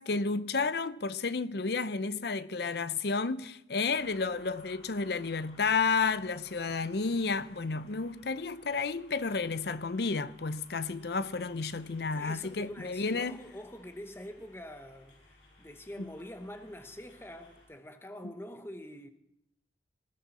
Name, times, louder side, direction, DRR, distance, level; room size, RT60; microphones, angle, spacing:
voice 1, 0.0-13.4, left 4 dB, 60° left, 0.7 m, -31 dB
sound 1, 3.9-17.7, left 1 dB, 80° left, 7.9 m, -59 dB
voice 2, 12.1-19.1, left 1 dB, 15° left, 0.9 m, -45 dB
19.5 x 15.5 x 4.2 m
head